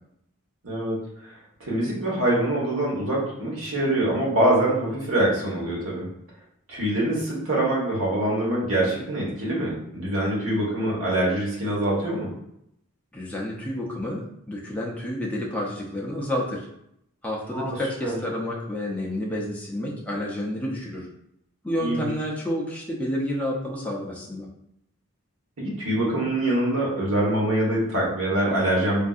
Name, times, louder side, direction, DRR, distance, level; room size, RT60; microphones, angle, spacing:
voice 1, 0.6-1.0 1.3-6.1 6.7-12.3 17.5-17.8 18.0-18.2 21.8-22.1 25.6-29.0, right 1 dB, 80° right, -4 dB, 1.1 m, -24 dB
voice 2, 13.1-16.7 17.2-21.1 21.6-24.5, left 1 dB, 5° left, -4 dB, 0.5 m, -30 dB
3.5 x 2.6 x 2.4 m, 0.76 s
head